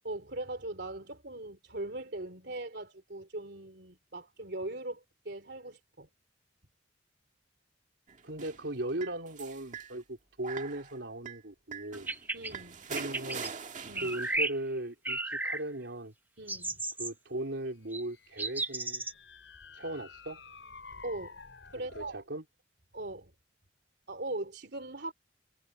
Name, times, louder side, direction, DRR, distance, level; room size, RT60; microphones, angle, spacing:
voice 1, 0.0-6.1 12.3-12.9 13.9-14.1 16.4-16.8 21.0-21.4 21.7-22.2 22.9-23.3 24.1-25.1, right 2 dB, 65° right, 3.5 m, -40 dB
sound 1, 8.1-9.9 10.4-11.0 11.3-11.4 11.7-14.4, right 5 dB, 45° right, 1.9 m, -43 dB
voice 2, 8.2-12.1 12.9-13.5 14.0-16.1 17.0-19.1 19.7-20.4 21.8-22.4, right 1 dB, 80° right, 3.7 m, -38 dB
sound 2, 11.9-12.5 12.9-13.5 13.9-14.6 15.0-15.6 16.5-17.1 17.9-18.0 18.4-19.1, right 2 dB, 10° right, 1.4 m, -34 dB
sound 3, 17.8-22.2, left 4 dB, 80° left, 6.8 m, -51 dB
head